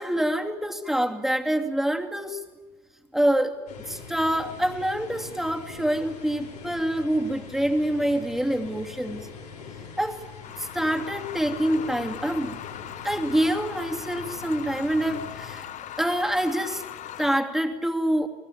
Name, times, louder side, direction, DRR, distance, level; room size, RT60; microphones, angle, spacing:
voice 1, 0.0-2.4 3.1-3.6 3.9-9.3 10.0-10.2 10.6-12.6 13.0-15.6 16.0-16.8 17.2-18.3, right 1 dB, ahead, 4 dB, 2.6 m, -26 dB
sound 1, 3.7-15.6, left 5 dB, 75° left, 6.3 m, -42 dB
sound 2, 10.4-17.4, left 11 dB, 35° left, 1.0 m, -40 dB
29.0 x 19.5 x 9.0 m, 1.2 s
figure-of-eight pair, 75°, 20 cm